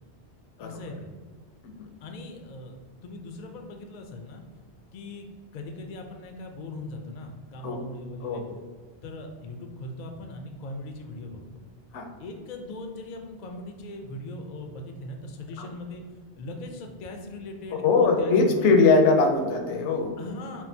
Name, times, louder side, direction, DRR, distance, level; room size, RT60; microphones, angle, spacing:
voice 1, 0.6-1.1 2.0-2.8 3.0-4.4 4.9-5.3 5.5-8.4 9.0-11.7 12.2-16.0 16.4-19.0 20.2-20.6, left 2 dB, 60° left, 4 dB, 0.4 m, -39 dB
voice 2, 17.8-20.1, left 3 dB, 80° left, 4 dB, 0.9 m, -21 dB
5.4 x 2.5 x 2.7 m, 1.5 s
omnidirectional pair, 1.2 m